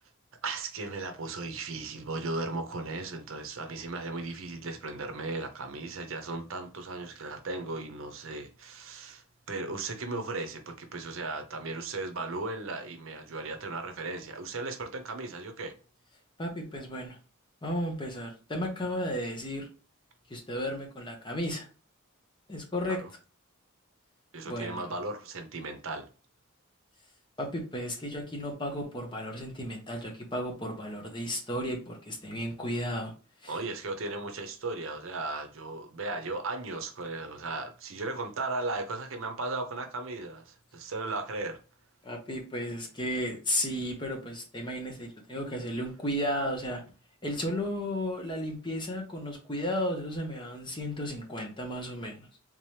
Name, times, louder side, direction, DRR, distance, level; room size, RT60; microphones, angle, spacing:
voice 1, 0.4-15.7 22.9-23.1 24.3-26.0 33.5-41.6, right 3 dB, 65° right, 0.7 m, -36 dB
voice 2, 16.4-17.2 17.6-19.7 20.3-21.7 22.5-23.0 24.4-24.9 27.4-33.1 33.4-33.5 42.0-46.8 47.2-52.3, equal, 20° left, 0.9 m, -34 dB
3.7 x 3.0 x 3.2 m
head